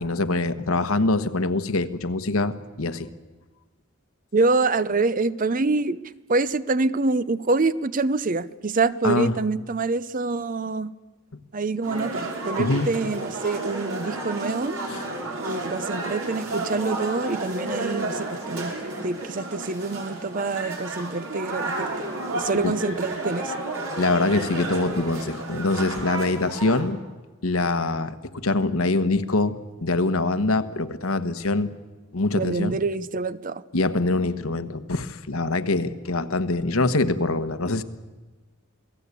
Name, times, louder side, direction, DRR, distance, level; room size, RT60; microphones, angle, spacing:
voice 1, 0.0-3.1 9.0-9.4 12.6-12.9 14.9-15.0 22.6-22.7 24.0-27.0 27.4-29.5 29.8-31.7 32.1-32.8 33.7-37.8, left 2 dB, 85° left, 12 dB, 1.3 m, -24 dB
voice 2, 4.3-6.0 6.3-10.9 11.5-14.8 15.4-18.8 19.0-21.9 22.3-23.6 32.3-33.6, right 3 dB, 40° right, 15 dB, 0.7 m, -26 dB
sound 1, 11.8-26.8, right 2 dB, 80° right, 5.6 m, -32 dB
27.5 x 18.0 x 8.4 m, 1.3 s
head